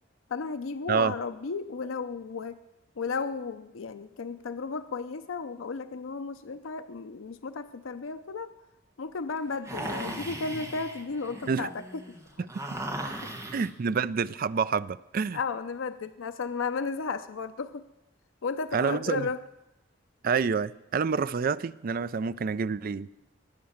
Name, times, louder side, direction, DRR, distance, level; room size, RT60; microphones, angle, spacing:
voice 1, 0.3-2.6 3.0-8.5 9.0-12.1 13.2-13.3 15.3-17.8 18.4-19.4, left 4 dB, 85° left, 11 dB, 0.6 m, -34 dB
sound 1, 9.6-13.7, right 1 dB, 15° right, 1.4 m, -37 dB
voice 2, 13.5-15.4 18.7-19.3 20.2-23.1, right 5 dB, 45° right, 17 dB, 0.4 m, -28 dB
19.0 x 7.5 x 7.1 m, 0.96 s
head